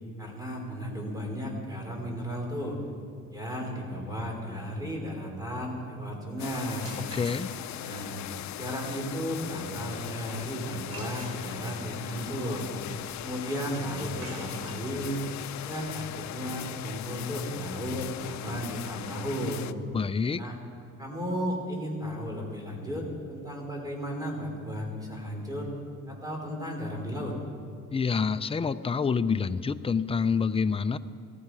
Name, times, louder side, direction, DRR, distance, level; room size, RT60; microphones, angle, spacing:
voice 1, 0.2-2.8 3.3-6.9 7.8-8.1 8.5-12.7 13.2-15.2 15.6-19.7 20.4-20.5 21.0-25.7 26.1-27.3, equal, 10° right, 0 dB, 4.2 m, -34 dB
sound 1, 6.4-19.7, left 13 dB, 70° left, 0.5 m, -39 dB
sound 2, 6.7-7.8 10.9-11.9 13.8-19.4, right 2 dB, 50° right, 3.5 m, -49 dB
voice 2, 7.1-7.5 19.9-20.4 27.9-31.0, left 5 dB, 20° left, 12 dB, 0.5 m, -27 dB
18.0 x 15.0 x 4.9 m, 2.2 s
cardioid pair, 90°, 30 cm